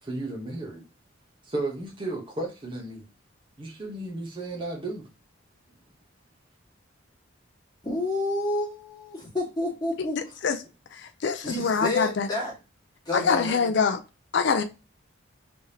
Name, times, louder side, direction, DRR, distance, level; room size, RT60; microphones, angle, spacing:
voice 1, 0.0-0.8 1.4-3.1 3.6-5.1, right 2 dB, 25° right, 0.9 m, -34 dB
voice 2, 7.8-10.4 11.3-12.5 13.0-13.7, left 2 dB, 20° left, 1.6 m, -30 dB
voice 3, 11.2-12.3 13.1-14.0 14.3-14.6, left 5 dB, 55° left, 0.4 m, -24 dB
3.5 x 3.4 x 2.7 m
head